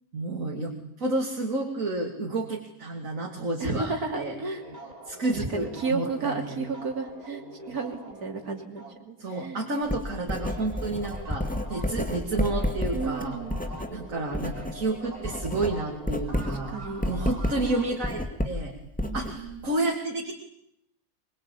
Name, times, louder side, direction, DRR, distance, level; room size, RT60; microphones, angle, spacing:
voice 1, 0.1-4.4 5.1-6.5 9.2-13.4 13.9-16.8 17.0-18.7 19.1-20.3, right 2 dB, 60° right, 1 dB, 3.3 m, -30 dB
voice 2, 3.6-4.6 5.3-9.6 12.9-13.6 16.3-17.0 19.0-19.7, right 4 dB, 80° right, 4 dB, 3.7 m, -33 dB
sound 1, 4.1-10.0 10.3-18.3, right 1 dB, 25° right, 3.8 m, -44 dB
Writing, 9.8-14.8 15.1-19.7, left 1 dB, 5° left, 2.2 m, -31 dB
23.5 x 23.5 x 8.6 m, 0.76 s
omnidirectional pair, 1.6 m